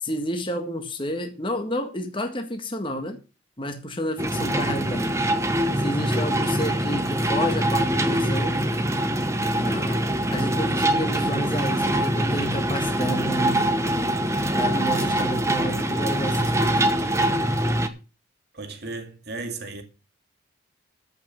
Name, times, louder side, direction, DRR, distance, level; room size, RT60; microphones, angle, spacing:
voice 1, 0.0-3.2 3.6-5.1 5.8-8.6 9.5-10.0 10.3-13.7 14.5-16.9, equal, 25° left, 1.8 m, -30 dB
sound 1, 4.2-17.9, right 1 dB, 15° right, 1.1 m, -24 dB
voice 2, 4.3-4.7 18.5-19.8, right 3 dB, 55° right, 2.4 m, -35 dB
14.0 x 5.8 x 7.2 m
head